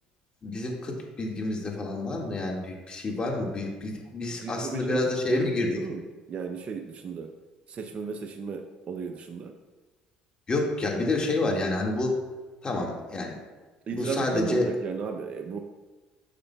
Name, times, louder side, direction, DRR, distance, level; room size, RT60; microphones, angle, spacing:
voice 1, 0.4-5.8 10.5-12.1 12.6-13.4 13.9-14.7, left 2 dB, 35° left, 0 dB, 2.0 m, -28 dB
voice 2, 4.4-5.0 5.3-6.0 6.3-7.3 7.7-9.5 13.9-15.6, right 5 dB, 45° right, 4 dB, 0.6 m, -34 dB
9.8 x 6.5 x 2.3 m, 1.3 s
supercardioid pair, 75°, 3 cm